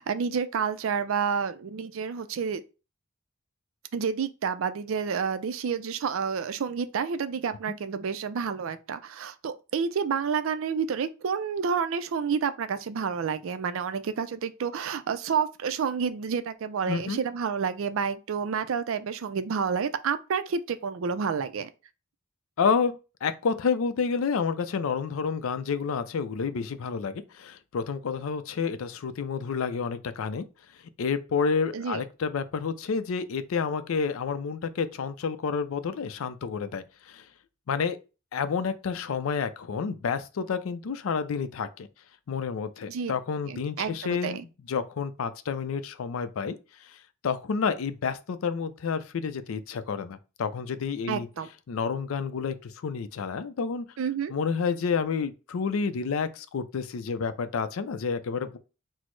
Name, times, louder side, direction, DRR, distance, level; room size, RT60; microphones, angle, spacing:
voice 1, 0.0-2.6 3.9-21.7 31.7-32.0 42.9-43.1 43.5-44.4 51.1-51.5 54.0-54.3, right 6 dB, 65° right, 0.4 m, -29 dB
voice 2, 16.9-17.2 22.6-30.4 31.0-37.2 37.7-38.0 38.3-41.9 42.3-46.6 46.9-47.0 47.2-51.3 51.7-53.9 54.3-58.6, left 5 dB, 70° left, 0.4 m, -29 dB
6.0 x 2.0 x 3.1 m
head